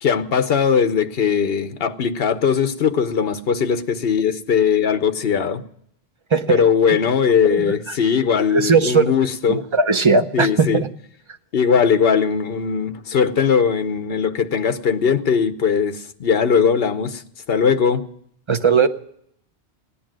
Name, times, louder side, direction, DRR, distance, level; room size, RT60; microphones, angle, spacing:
voice 1, 0.0-5.6 6.5-9.6 10.3-10.8 11.5-17.2 17.5-18.0, left 6 dB, 65° left, 1.1 m, -19 dB
voice 2, 6.3-6.6 7.5-8.0 8.5-9.0 9.5-10.9 18.5-18.9, right 4 dB, 30° right, 0.7 m, -18 dB
17.0 x 10.0 x 7.5 m
omnidirectional pair, 1.1 m